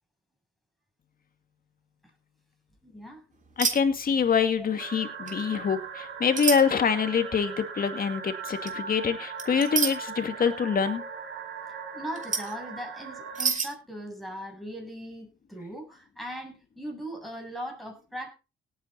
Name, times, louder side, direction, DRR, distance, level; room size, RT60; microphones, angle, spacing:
voice 1, 2.8-3.2 11.9-18.3, equal, ahead, 1 dB, 8.0 m, -39 dB
voice 2, 3.6-11.0, left 6 dB, 45° left, 9 dB, 2.3 m, -25 dB
sound 1, 3.6-3.8 4.1-4.4 5.3-5.4 6.4-6.6 8.5-8.7 9.4-9.9 12.1-12.5 13.3-13.7, right 6 dB, 40° right, 3.3 m, -27 dB
sound 2, 4.8-13.5, right 5 dB, 70° right, 3.5 m, -39 dB
17.5 x 9.5 x 4.1 m, 0.32 s
cardioid pair, 90°, 20 cm